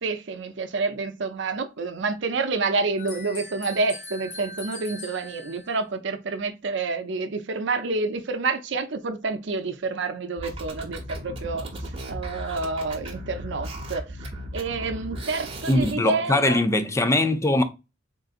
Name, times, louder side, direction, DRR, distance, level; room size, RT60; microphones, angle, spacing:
voice 1, 0.0-11.7 12.1-14.2 14.5-16.6, right 3 dB, 65° right, 0.6 m, -28 dB
sound 1, 3.0-5.8, left 3 dB, 40° left, 1.0 m, -40 dB
sound 2, 10.4-15.9, right 1 dB, 30° right, 1.0 m, -36 dB
voice 2, 15.7-17.6, left 2 dB, 15° left, 0.5 m, -21 dB
3.8 x 3.7 x 2.5 m
head